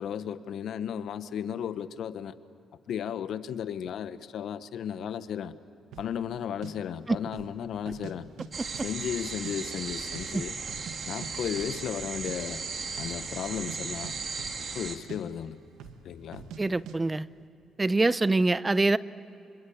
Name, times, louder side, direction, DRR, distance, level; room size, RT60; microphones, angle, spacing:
voice 1, 0.0-2.3 2.9-5.5 6.0-8.3 8.8-10.6 11.1-12.6 13.0-14.1 14.7-15.6 16.0-16.5, left 9 dB, 70° left, 12 dB, 1.1 m, -34 dB
sound 1, 5.9-6.1 6.6-6.7 7.2-7.6 7.8-8.5 8.7-9.5 9.8-9.9 10.1-11.0 11.2-11.3 11.6-11.8 12.1-12.4 12.9-13.2 13.5-14.8 15.1-15.2 15.8-16.0 16.3-16.6 16.9-17.0, right 7 dB, 85° right, 1.9 m, -44 dB
sound 2, 8.5-15.0, right 5 dB, 50° right, 2.8 m, -36 dB
voice 2, 16.6-17.3 17.8-19.0, right 2 dB, 20° right, 16 dB, 0.6 m, -24 dB
27.0 x 25.5 x 8.6 m, 2.8 s
cardioid pair, 90°, 0 cm